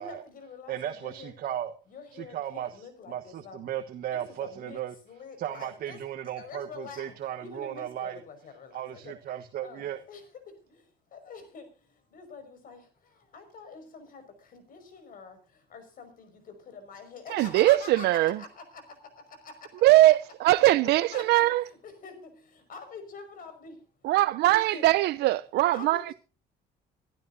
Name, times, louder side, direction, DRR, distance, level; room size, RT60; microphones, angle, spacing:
voice 1, 0.0-1.3 1.9-3.6 4.1-6.0 6.4-7.1 7.4-9.2 9.6-18.1 18.4-19.7 20.6-23.8 24.4-24.8 25.7-26.1, left 4 dB, 55° left, 5.6 m, -46 dB
voice 2, 0.7-1.7 2.1-2.7 3.1-4.9 5.4-8.2 8.7-10.0, right 11 dB, 60° right, 1.4 m, -35 dB
voice 3, 17.3-18.4 19.8-21.6 24.0-26.1, right 16 dB, 75° right, 0.6 m, -21 dB
25.5 x 12.0 x 2.7 m
cardioid pair, 110°, 17 cm